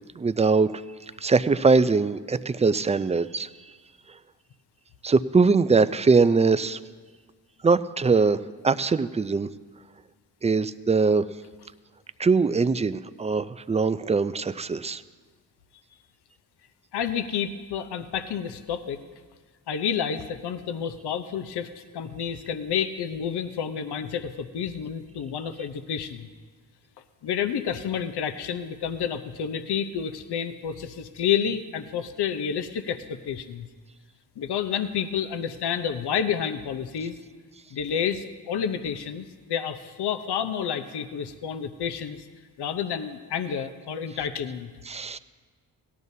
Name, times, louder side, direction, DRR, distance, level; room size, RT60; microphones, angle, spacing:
voice 1, 0.2-0.8 1.2-3.5 5.0-6.8 7.6-9.5 10.4-11.3 12.2-15.0 44.9-45.2, right 4 dB, 15° right, 14 dB, 0.4 m, -22 dB
voice 2, 16.9-19.0 19.7-26.3 27.2-33.7 34.4-37.2 37.7-42.2 42.6-44.7, left 8 dB, 60° left, 9 dB, 0.8 m, -29 dB
17.5 x 12.5 x 2.7 m, 1.5 s
supercardioid pair, 45°, 45 cm